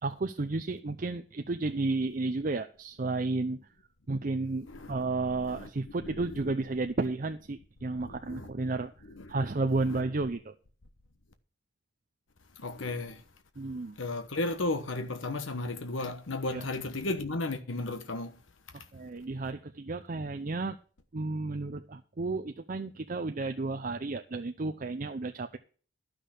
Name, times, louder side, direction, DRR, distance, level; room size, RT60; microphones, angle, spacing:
voice 1, 0.0-3.6 4.1-8.9 9.3-10.5 13.6-14.0 16.5-16.7 18.7-20.8 21.1-25.6, right 3 dB, 45° right, 0.6 m, -32 dB
voice 2, 8.0-8.7 9.1-9.4 9.8-10.0 12.6-13.2 14.0-18.3, left 2 dB, 70° left, 1.1 m, -34 dB
12.5 x 6.2 x 6.4 m
head